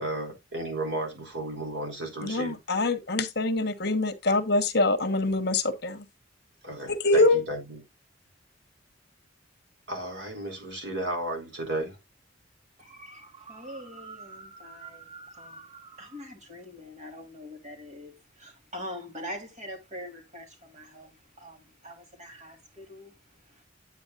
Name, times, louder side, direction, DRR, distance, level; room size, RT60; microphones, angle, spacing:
voice 1, 0.0-2.6 6.6-7.8 9.9-12.0, right 1 dB, 70° right, 4.1 m, -33 dB
voice 2, 2.2-6.1 6.9-7.4, left 2 dB, 60° left, 1.3 m, -24 dB
voice 3, 12.8-23.1 23.5-23.6, equal, 40° right, 3.5 m, -43 dB
9.2 x 8.9 x 2.5 m
head